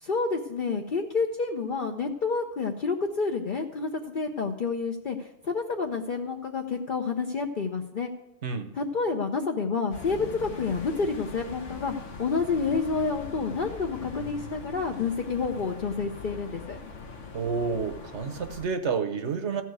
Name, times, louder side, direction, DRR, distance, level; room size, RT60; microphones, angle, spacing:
voice 1, 0.0-8.1 8.7-11.9 12.2-16.8, left 4 dB, 50° left, 2 dB, 0.8 m, -29 dB
sound 1, 9.9-18.7, left 4 dB, 80° left, 1.5 m, -41 dB
voice 2, 17.3-19.6, right 5 dB, 70° right, 8 dB, 1.2 m, -29 dB
14.0 x 4.7 x 7.9 m, 0.94 s
omnidirectional pair, 1.2 m